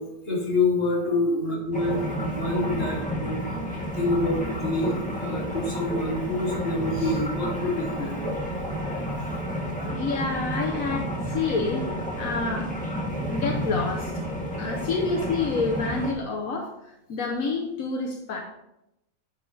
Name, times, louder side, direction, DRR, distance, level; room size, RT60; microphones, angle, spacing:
voice 1, 0.0-3.4 3.9-9.5 9.8-10.2 12.3-12.5, left 2 dB, 45° left, -3 dB, 2.5 m, -28 dB
sound 1, 1.7-16.1, equal, 5° left, 2.1 m, -31 dB
voice 2, 9.9-11.9 12.2-12.7 13.3-14.1 14.6-18.4, left 4 dB, 80° left, 1 dB, 1.4 m, -28 dB
9.5 x 6.7 x 3.3 m, 0.84 s
omnidirectional pair, 1.4 m